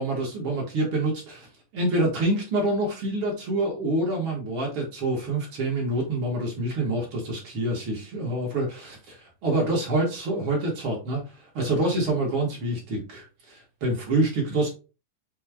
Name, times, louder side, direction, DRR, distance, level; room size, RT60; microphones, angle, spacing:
voice 1, 0.0-1.5 1.7-11.2 11.5-14.7, right 2 dB, 55° right, -1 dB, 1.5 m, -26 dB
5.9 x 2.3 x 3.4 m, 0.32 s
omnidirectional pair, 3.9 m